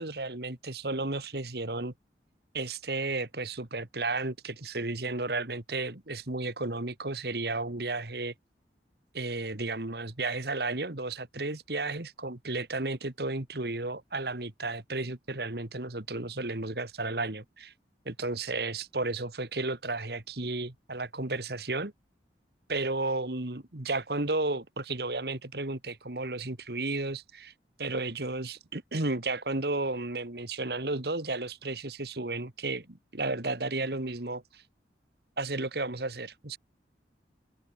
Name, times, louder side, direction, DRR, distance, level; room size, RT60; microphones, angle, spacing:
voice 1, 0.0-1.9 2.5-8.3 9.1-17.7 18.1-21.9 22.7-27.5 27.8-34.6 35.4-36.6, right 2 dB, 60° right, 1.9 m, -33 dB
open air
head